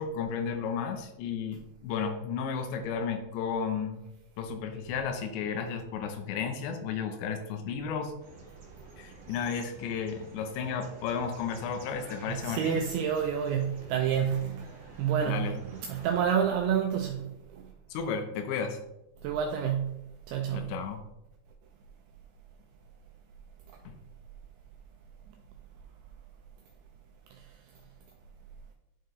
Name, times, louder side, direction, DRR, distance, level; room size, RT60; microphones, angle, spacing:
voice 1, 0.0-4.1 4.4-8.1 9.0-12.8 15.3-15.6 17.9-18.8 20.5-21.0 23.9-24.0, left 6 dB, 80° left, 6 dB, 3.0 m, -33 dB
sound 1, 8.2-16.4, right 2 dB, 60° right, 1.7 m, -50 dB
voice 2, 12.3-14.6 15.0-17.6 19.2-20.7, right 8 dB, 90° right, 2 dB, 2.2 m, -29 dB
11.0 x 4.5 x 3.1 m, 0.92 s
omnidirectional pair, 5.2 m